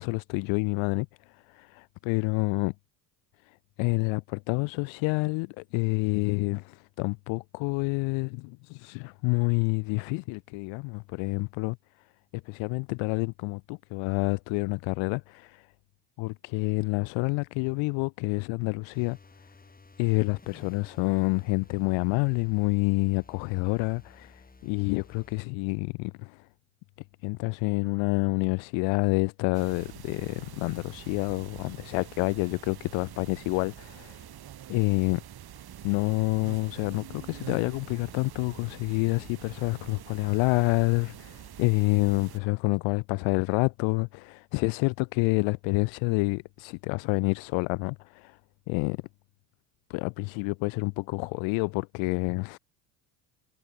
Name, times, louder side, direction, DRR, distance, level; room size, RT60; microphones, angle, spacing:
voice 1, 0.0-2.7 3.8-11.8 12.5-15.7 16.2-19.2 20.0-26.4 27.2-34.2 34.7-35.2 35.8-48.4 48.7-49.0 49.9-52.6, left 30 dB, 75° left, 0.5 m, -28 dB
sound 1, 18.9-25.5, left 3 dB, 20° left, 6.6 m, -54 dB
sound 2, 29.5-42.4, right 11 dB, 50° right, 5.2 m, -46 dB
supercardioid pair, 95°, 48 cm